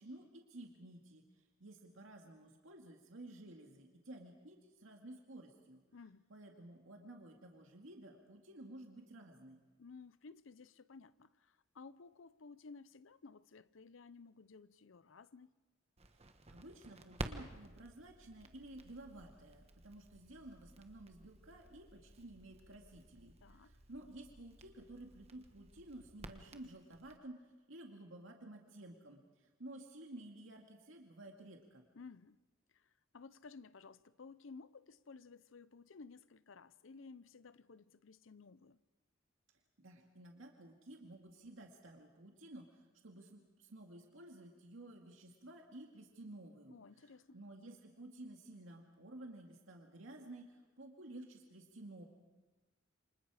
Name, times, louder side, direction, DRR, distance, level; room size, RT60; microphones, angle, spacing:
voice 1, 0.0-5.8 6.3-9.6 16.5-31.8 39.8-52.0, right 1 dB, 85° right, 2.1 m, -53 dB
voice 2, 5.9-6.3 9.8-15.5 23.4-23.8 31.9-32.4 32.7-38.8 46.7-47.4, left 4 dB, 75° left, 0.7 m, -56 dB
Crackle, 16.0-27.2, right 2 dB, 30° right, 1.2 m, -52 dB
28.0 x 25.5 x 4.9 m
head